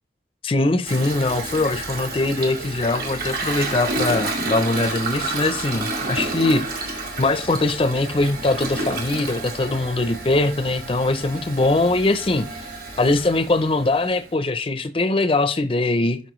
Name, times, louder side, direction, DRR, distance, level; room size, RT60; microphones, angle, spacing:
voice 1, 0.4-12.7 13.0-16.2, left 2 dB, 30° left, 0.5 m, -22 dB
Toilet flush, 0.8-14.3, right 2 dB, 55° right, 2.0 m, -30 dB
12.5 x 4.4 x 3.1 m
head